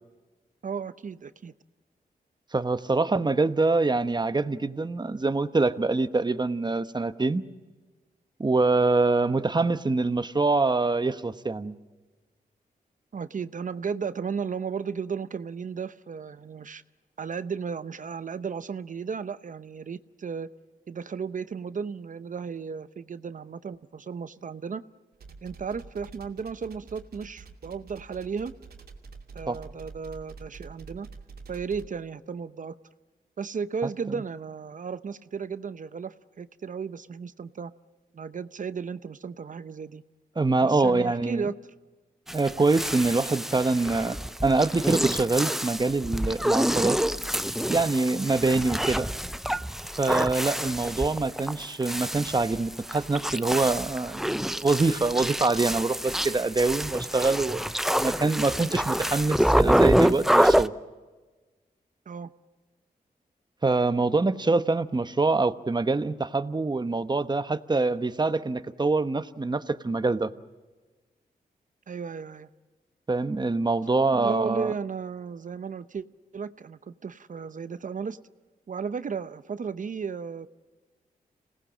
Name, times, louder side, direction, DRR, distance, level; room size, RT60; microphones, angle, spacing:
voice 1, 0.6-1.5 13.1-16.8 17.2-20.5 20.9-24.8 25.4-28.5 29.3-31.1 31.5-32.8 33.4-37.7 38.1-40.0 40.6-41.5 62.1-62.3 71.9-72.5 74.1-76.0 76.3-78.2 78.7-80.5, right 6 dB, 55° right, 13 dB, 0.8 m, -34 dB
voice 2, 2.5-7.4 8.4-11.8 29.5-29.6 40.4-41.5 42.3-47.0 47.7-49.1 50.0-57.6 57.9-60.7 63.6-70.3 73.1-74.7, right 3 dB, 25° right, 11 dB, 1.1 m, -25 dB
sound 1, 25.1-31.9, right 4 dB, 85° right, 2.5 m, -46 dB
sound 2, 42.3-60.7, equal, ahead, 0.7 m, -27 dB
26.5 x 18.5 x 7.5 m, 1.3 s
cardioid pair, 60°, 16 cm